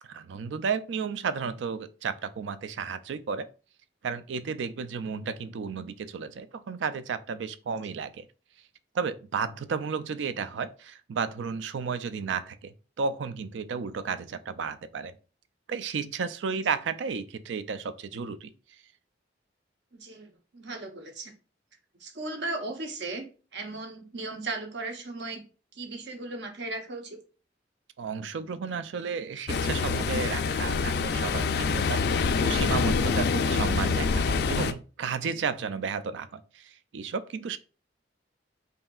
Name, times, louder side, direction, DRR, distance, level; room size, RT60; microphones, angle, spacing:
voice 1, 0.1-3.5 4.0-8.3 8.9-15.2 15.7-18.5 28.0-37.6, right 5 dB, 90° right, 0.4 m, -33 dB
voice 2, 19.9-21.3 22.0-25.4 25.7-27.2, right 2 dB, 70° right, 0.9 m, -37 dB
Ocean, 29.5-34.7, left 5 dB, 60° left, 0.3 m, -26 dB
5.4 x 2.7 x 2.3 m
head